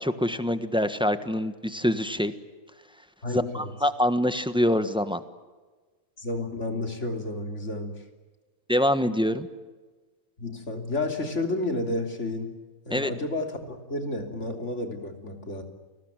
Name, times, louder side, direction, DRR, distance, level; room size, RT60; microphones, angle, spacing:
voice 1, 0.0-2.3 3.3-5.2 8.7-9.5 12.9-13.1, equal, 5° right, 10 dB, 1.3 m, -25 dB
voice 2, 3.2-3.7 6.2-8.0 10.4-12.5 12.9-15.6, left 2 dB, 60° left, 4 dB, 3.5 m, -31 dB
30.0 x 20.5 x 9.0 m, 1.3 s
omnidirectional pair, 1.4 m